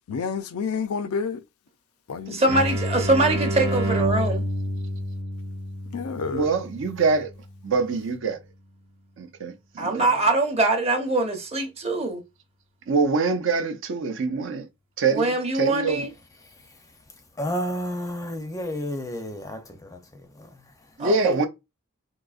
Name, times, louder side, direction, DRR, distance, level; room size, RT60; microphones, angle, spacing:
voice 1, 0.1-1.4 2.1-2.5 5.9-6.5, left 5 dB, 80° left, 0.4 m, -29 dB
voice 2, 2.3-4.4 9.8-12.2 15.1-16.1 21.0-21.5, right 2 dB, 30° right, 0.7 m, -23 dB
sound 1, 2.5-8.0, equal, 80° right, 0.9 m, -29 dB
voice 3, 6.3-7.3 7.6-8.4 9.2-10.1 12.9-14.7 15.0-16.1 21.0-21.5, right 4 dB, 60° right, 0.5 m, -24 dB
voice 4, 16.4-21.0, equal, 15° left, 0.5 m, -33 dB
3.8 x 2.7 x 2.4 m
head